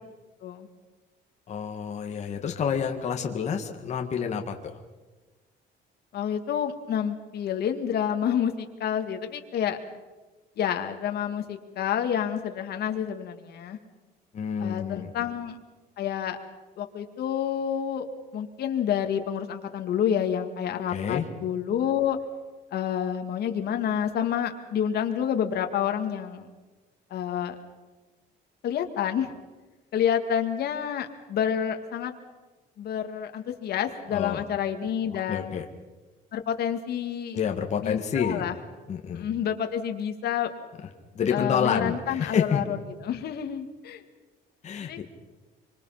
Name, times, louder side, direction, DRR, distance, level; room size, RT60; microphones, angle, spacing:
voice 1, 1.5-4.8 14.3-15.1 20.9-21.3 34.1-34.4 35.3-35.7 37.3-38.4 38.9-39.3 41.2-42.6 44.6-45.0, left 7 dB, 35° left, 3 dB, 1.8 m, -28 dB
voice 2, 6.1-9.8 10.6-13.8 14.6-15.6 16.0-16.4 16.8-18.1 18.3-22.2 22.7-26.5 27.1-27.6 28.6-29.3 29.9-32.1 32.8-35.5 36.3-37.4 37.8-38.6 39.1-40.5 41.3-42.8 43.0-44.0 44.8-45.0, left 9 dB, 55° left, 5 dB, 2.1 m, -28 dB
25.5 x 25.5 x 5.8 m, 1.2 s
cardioid pair, 165°, 19 cm